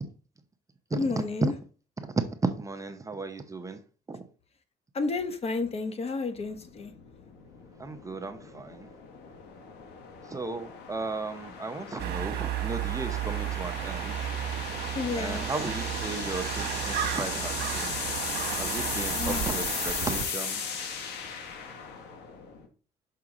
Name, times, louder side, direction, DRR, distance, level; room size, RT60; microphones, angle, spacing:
voice 1, 0.9-1.5 4.9-6.9 14.9-15.4 19.2-19.5, left 4 dB, 35° left, 1.0 m, -31 dB
voice 2, 2.0-3.8 4.1-4.3 7.8-8.9 10.2-14.3 15.2-18.0 18.6-20.6, right 3 dB, 20° right, 0.7 m, -35 dB
sound 1, 6.4-22.7, left 6 dB, 85° left, 1.3 m, -37 dB
sound 2, 12.0-20.2, right 11 dB, 80° right, 1.1 m, -33 dB
5.9 x 5.6 x 3.8 m
cardioid pair, 110°, 17 cm